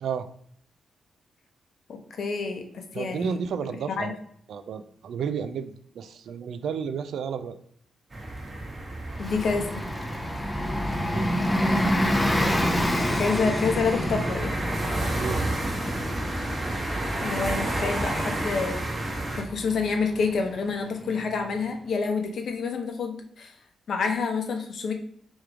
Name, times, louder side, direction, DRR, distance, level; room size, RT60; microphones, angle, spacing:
voice 1, 1.9-3.3 3.9-4.1 9.2-9.8 13.1-14.5 17.2-18.8 19.4-23.5 23.9-24.9, left 4 dB, 65° left, 4 dB, 0.7 m, -28 dB
voice 2, 2.9-4.2 4.5-7.6 11.1-11.3 15.1-15.5, right 6 dB, 75° right, 10 dB, 0.3 m, -32 dB
sound 1, 8.1-19.4, right 1 dB, 30° right, 0.9 m, -32 dB
Bus, 9.1-21.4, equal, 10° left, 0.6 m, -29 dB
3.3 x 3.1 x 3.6 m, 0.65 s
cardioid pair, 80°, 0 cm